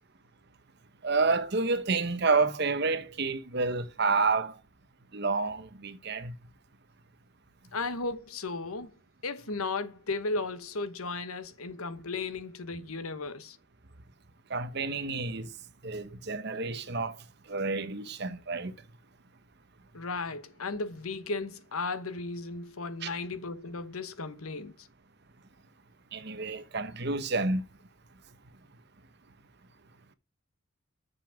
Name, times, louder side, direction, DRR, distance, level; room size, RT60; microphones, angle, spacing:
voice 1, 1.0-4.5 5.1-6.3 14.5-15.5 15.8-17.2 17.5-18.7 23.0-23.1 26.1-27.6, right 4 dB, 50° right, 0.9 m, -29 dB
voice 2, 7.7-8.9 9.2-13.6 19.9-24.9, left 3 dB, 80° left, 1.1 m, -35 dB
6.9 x 5.8 x 5.9 m
head